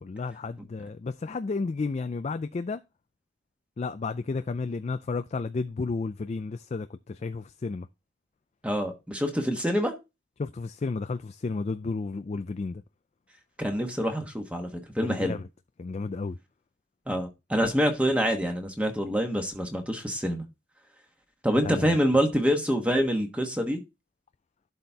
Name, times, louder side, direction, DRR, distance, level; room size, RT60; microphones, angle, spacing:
voice 1, 0.0-2.8 3.8-7.9 10.4-12.8 15.0-15.4 15.8-16.4 21.6-22.0, left 4 dB, 35° left, 0.3 m, -32 dB
voice 2, 8.6-9.9 13.6-14.7 14.9-15.4 17.1-20.4 21.4-23.8, equal, 5° right, 1.2 m, -26 dB
11.5 x 4.3 x 3.5 m
head